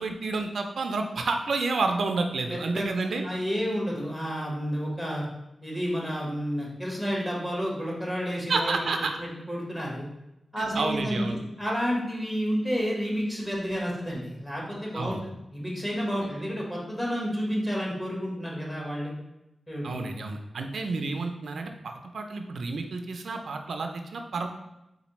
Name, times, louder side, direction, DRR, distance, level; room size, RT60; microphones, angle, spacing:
voice 1, 0.0-3.3 8.5-9.2 10.6-11.4 14.9-15.2 19.8-24.5, right 3 dB, 65° right, 5 dB, 0.3 m, -30 dB
voice 2, 2.5-5.2 5.6-8.9 9.2-10.1 10.5-15.2 15.5-19.1 19.7-20.1, equal, 15° left, -3 dB, 1.2 m, -30 dB
4.1 x 3.8 x 3.0 m, 0.91 s
wide cardioid pair, 130°, 0 cm